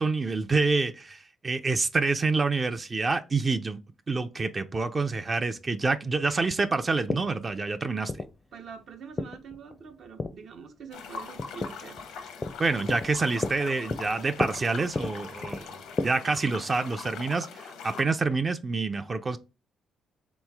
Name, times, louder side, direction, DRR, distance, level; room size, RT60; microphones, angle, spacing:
voice 1, 0.0-3.8 4.1-8.2 12.6-15.7 16.0-19.4, right 3 dB, 30° right, 0.4 m, -27 dB
sound 1, 5.0-16.0, left 3 dB, 30° left, 0.4 m, -36 dB
voice 2, 8.5-12.0, right 6 dB, 65° right, 0.7 m, -45 dB
sound 2, 10.9-18.0, left 5 dB, 85° left, 0.7 m, -42 dB
3.9 x 3.0 x 3.4 m
cardioid pair, 90°, 0 cm